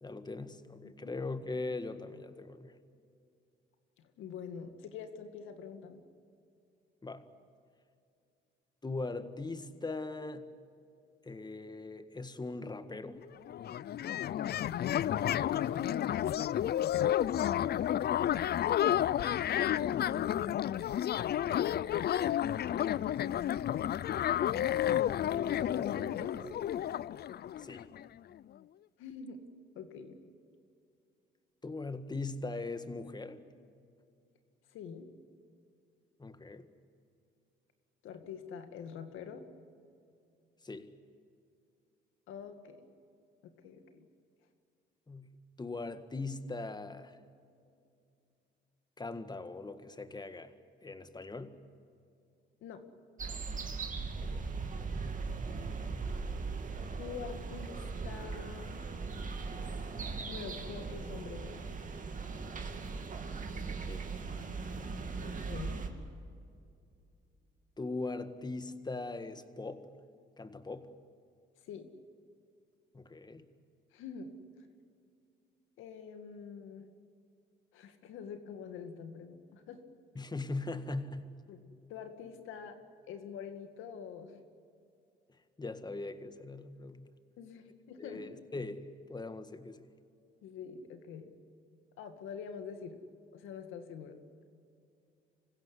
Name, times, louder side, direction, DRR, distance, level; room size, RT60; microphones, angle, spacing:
voice 1, 0.0-2.7 7.0-7.2 8.8-10.5 11.2-13.2 27.6-27.9 31.6-33.4 36.2-36.7 40.6-40.9 45.1-45.3 45.6-47.2 49.0-50.5 50.8-51.5 54.2-54.4 63.8-64.0 67.8-69.8 70.4-70.9 72.9-73.4 80.1-81.3 85.6-87.1 88.0-89.9, left 3 dB, 20° left, 10 dB, 1.7 m, -40 dB
voice 2, 4.0-6.0 15.6-15.8 19.4-20.3 21.6-23.2 25.2-26.5 29.0-29.4 29.8-30.2 34.7-35.1 38.0-39.4 42.3-42.9 43.6-44.1 52.6-52.8 57.0-58.8 60.3-61.6 65.2-65.8 71.7-71.9 73.9-74.3 75.8-76.9 77.7-79.8 81.5-81.6 81.9-82.8 83.1-84.4 87.4-88.3 90.4-91.3 92.0-93.0 93.3-94.2, left 7 dB, 90° left, 7 dB, 2.1 m, -45 dB
sound 1, 13.2-13.3 13.5-28.1, left 11 dB, 55° left, 0.5 m, -31 dB
sound 2, 53.2-65.9, right 4 dB, 40° right, 2.6 m, -39 dB
26.0 x 16.0 x 9.7 m, 2.5 s
cardioid pair, 90°, 20 cm